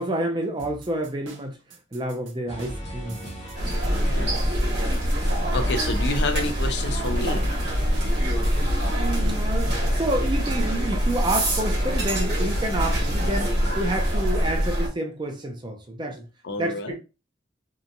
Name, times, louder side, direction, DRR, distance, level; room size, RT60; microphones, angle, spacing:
voice 1, 0.0-1.6 1.9-3.3 9.0-16.3 16.6-17.0, right 1 dB, 25° right, 0.5 m, -29 dB
sound 1, 0.6-11.3, right 3 dB, 85° right, 0.6 m, -45 dB
sound 2, 2.5-14.3, equal, 35° left, 0.8 m, -37 dB
sound 3, 3.6-14.9, equal, 60° right, 1.0 m, -24 dB
voice 2, 3.9-4.3 5.5-7.5 16.4-16.9, left 2 dB, 60° left, 0.5 m, -29 dB
2.8 x 2.1 x 2.6 m
head